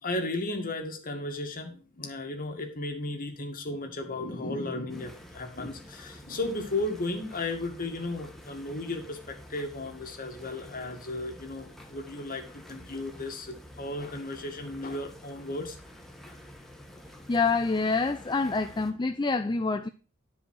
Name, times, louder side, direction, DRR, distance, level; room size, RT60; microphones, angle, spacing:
voice 1, 0.0-15.8, left 2 dB, 40° left, 2.0 m, -35 dB
sound 1, 4.9-18.9, equal, ahead, 1.4 m, -49 dB
voice 2, 17.3-19.9, left 4 dB, 20° left, 0.4 m, -26 dB
10.5 x 5.0 x 6.4 m
head